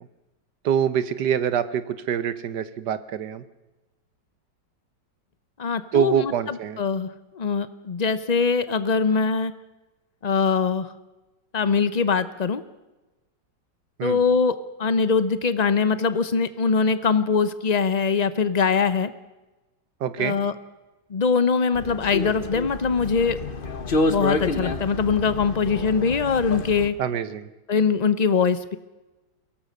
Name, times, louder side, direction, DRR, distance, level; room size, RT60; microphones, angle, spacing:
voice 1, 0.6-3.4 5.9-6.8 14.0-14.2 20.0-20.4 27.0-27.5, right 8 dB, 70° right, 14 dB, 1.6 m, -25 dB
voice 2, 5.6-7.1 7.3-9.5 10.2-10.9 11.5-12.6 14.0-19.1 20.2-20.5 21.1-23.4 24.1-26.9 27.7-28.8, left 5 dB, 60° left, 13 dB, 0.4 m, -22 dB
sound 1, 21.7-26.9, left 2 dB, 35° left, 1.3 m, -28 dB
23.0 x 17.5 x 6.6 m, 1.1 s
omnidirectional pair, 1.9 m